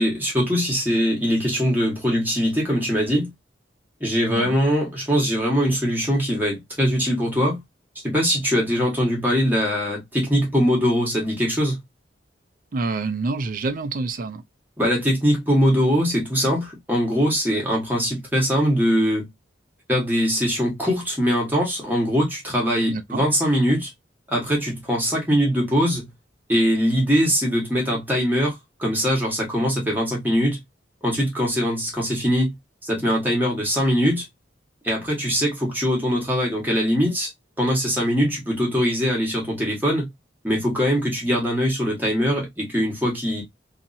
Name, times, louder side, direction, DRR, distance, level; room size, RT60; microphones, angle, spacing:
voice 1, 0.0-3.3 4.0-7.6 8.0-11.8 14.8-19.3 19.9-23.9 24.3-26.1 26.5-30.6 31.0-32.5 32.8-34.2 34.8-37.3 37.6-40.1 40.4-43.4, equal, 10° right, 1.2 m, -22 dB
voice 2, 12.7-14.4 22.9-23.2, right 3 dB, 50° right, 0.5 m, -27 dB
2.9 x 2.6 x 2.5 m
head